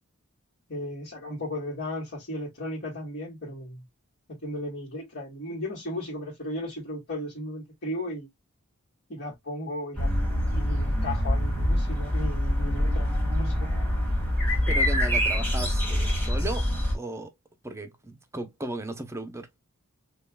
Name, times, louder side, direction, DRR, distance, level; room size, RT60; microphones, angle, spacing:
voice 1, 0.7-3.8 4.4-8.3 9.1-10.1 10.5-13.7, left 1 dB, 50° left, 1.6 m, -35 dB
sound 1, 10.0-17.0, equal, 5° left, 1.8 m, -25 dB
voice 2, 14.7-17.3 17.6-19.5, right 1 dB, 15° right, 0.7 m, -36 dB
5.4 x 2.4 x 2.2 m
head